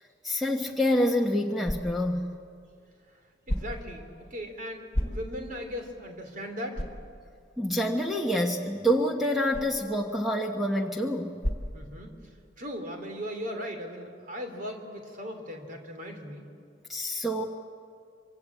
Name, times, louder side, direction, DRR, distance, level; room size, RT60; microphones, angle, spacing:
voice 1, 0.2-2.4 7.6-11.3 16.9-17.4, equal, ahead, 1 dB, 1.3 m, -27 dB
sound 1, 0.8-12.5, equal, 35° left, 2.8 m, -39 dB
voice 2, 3.5-6.8 11.7-12.1 12.6-16.5, equal, 45° right, 4 dB, 3.5 m, -38 dB
26.0 x 25.0 x 8.5 m, 2.3 s
head